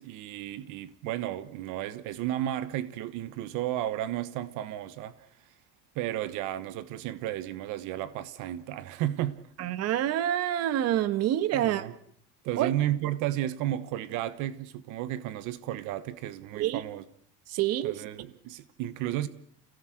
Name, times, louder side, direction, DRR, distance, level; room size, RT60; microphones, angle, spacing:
voice 1, 0.0-5.3 5.9-9.4 11.5-11.9 12.4-17.0 17.8-19.3, right 13 dB, 70° right, 1.3 m, -33 dB
voice 2, 9.6-11.8 12.6-12.7 16.6-16.8 17.5-18.0, right 12 dB, 55° right, 1.4 m, -27 dB
29.5 x 17.5 x 7.8 m
cardioid pair, 175°, 31 cm